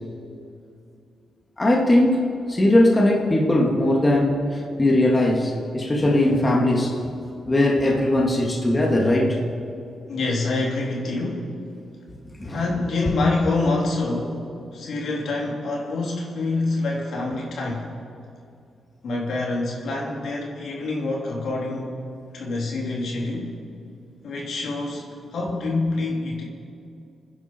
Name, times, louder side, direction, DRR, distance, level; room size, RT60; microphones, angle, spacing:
voice 1, 1.6-2.2 2.5-7.0 7.5-9.4 12.4-12.6, left 1 dB, 25° left, -1 dB, 2.4 m, -19 dB
voice 2, 10.1-11.6 12.5-14.4 14.7-17.9 19.0-21.9 22.3-23.5 24.2-25.1 25.3-26.4, left 2 dB, 75° left, -2 dB, 3.3 m, -26 dB
27.5 x 10.5 x 4.6 m, 2.5 s
cardioid pair, 85°, 0 cm